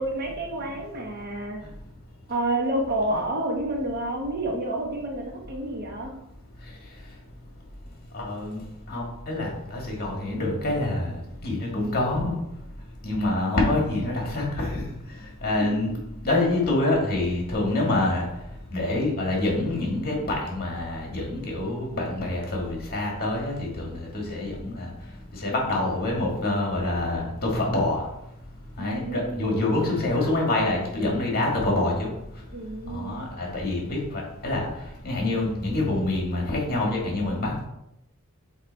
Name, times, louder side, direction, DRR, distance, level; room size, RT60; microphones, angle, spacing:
voice 1, 0.0-1.6 2.3-6.1 15.7-15.8 28.8-29.7 32.5-33.3, right 1 dB, 45° right, 1 dB, 1.0 m, -29 dB
voice 2, 8.1-12.4 13.0-14.8 15.4-18.3 18.7-24.9 25.3-28.1 28.8-32.1 32.9-34.7 35.0-37.7, left 2 dB, 45° left, -1 dB, 1.8 m, -26 dB
7.7 x 3.0 x 4.0 m, 0.83 s
head